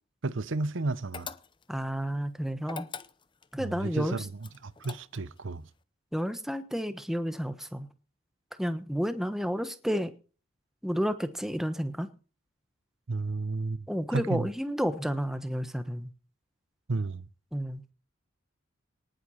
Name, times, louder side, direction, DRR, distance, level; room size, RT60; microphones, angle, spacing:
voice 1, 0.2-1.3 3.6-5.7 13.1-14.5 16.9-17.3, right 3 dB, 65° right, 0.8 m, -32 dB
sound 1, 1.1-1.8 2.6-3.5 4.4-5.4, left 5 dB, 25° left, 0.7 m, -42 dB
voice 2, 1.7-2.9 3.5-4.2 6.1-7.9 8.6-10.1 10.8-12.1 13.9-16.1 17.5-17.8, equal, ahead, 1.1 m, -31 dB
19.0 x 7.9 x 5.7 m
head